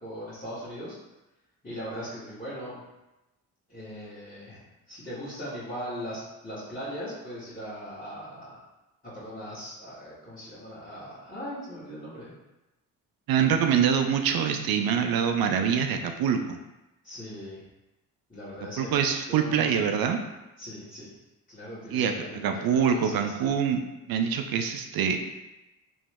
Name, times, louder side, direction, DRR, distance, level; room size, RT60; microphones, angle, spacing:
voice 1, 0.0-0.9 1.6-2.8 3.7-8.6 9.1-12.3 17.0-17.6 18.3-19.8 20.6-21.1 21.5-23.5, equal, 20° left, -13 dB, 1.4 m, -39 dB
voice 2, 13.3-16.6 18.8-20.2 21.9-22.1 22.4-23.8 24.1-25.2, right 7 dB, 55° right, 6 dB, 0.5 m, -25 dB
3.0 x 2.0 x 3.4 m, 0.99 s
hypercardioid pair, 45°, 44 cm